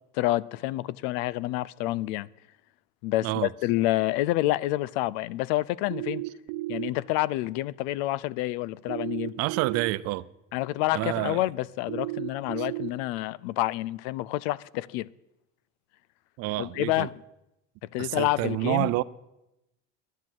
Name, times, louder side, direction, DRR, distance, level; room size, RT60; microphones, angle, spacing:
voice 1, 0.1-2.3 3.0-6.2 6.7-9.3 10.5-15.1 16.6-17.2 17.8-18.9, left 16 dB, 85° left, 0.5 m, -28 dB
sound 1, 5.9-6.9 8.9-9.9 11.9-12.9, right 20 dB, 75° right, 1.0 m, -33 dB
voice 2, 9.4-10.2 10.9-11.4 16.4-17.1 18.0-19.0, right 18 dB, 50° right, 0.5 m, -28 dB
11.0 x 10.0 x 7.5 m
cardioid pair, 150°, 31 cm